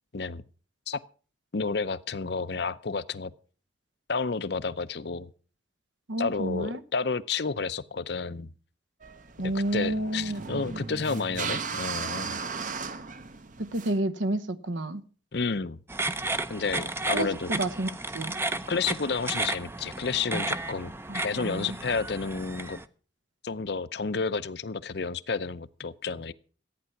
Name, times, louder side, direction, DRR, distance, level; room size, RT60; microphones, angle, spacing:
voice 1, 1.5-3.3 4.1-5.3 6.2-8.5 9.7-12.4 15.3-15.8 16.5-17.5 18.7-20.9 21.2-22.8 23.4-26.3, left 4 dB, 55° left, 0.6 m, -31 dB
voice 2, 6.1-6.8 9.4-10.4 13.6-15.0 17.1-18.3 21.1-21.8, right 1 dB, 75° right, 1.1 m, -30 dB
sound 1, 9.0-14.0, right 5 dB, 40° right, 0.8 m, -36 dB
sound 2, 15.9-22.8, right 2 dB, 10° right, 0.6 m, -33 dB
14.0 x 9.5 x 5.9 m
head